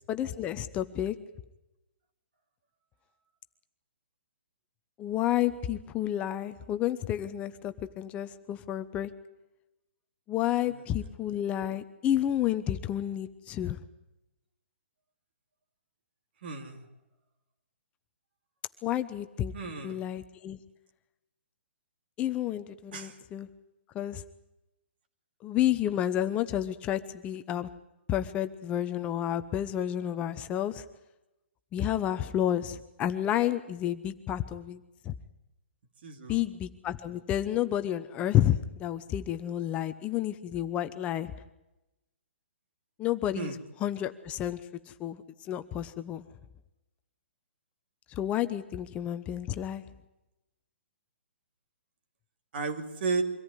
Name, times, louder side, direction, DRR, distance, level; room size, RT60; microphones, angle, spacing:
voice 1, 0.1-1.2 5.0-9.1 10.3-13.8 18.8-19.5 19.8-20.6 22.2-23.5 23.9-24.2 25.4-27.7 28.1-30.8 31.7-34.8 35.0-35.1 36.3-41.3 43.0-44.6 45.0-45.2 45.5-46.2 48.1-49.8, left 11 dB, 20° left, 10 dB, 0.8 m, -30 dB
voice 2, 16.4-16.9 19.5-20.0 22.9-23.2 36.0-36.4 43.3-43.6 52.5-53.2, right 4 dB, 55° right, 6 dB, 2.9 m, -34 dB
24.0 x 14.5 x 9.8 m, 0.96 s
hypercardioid pair, 145°, 6 cm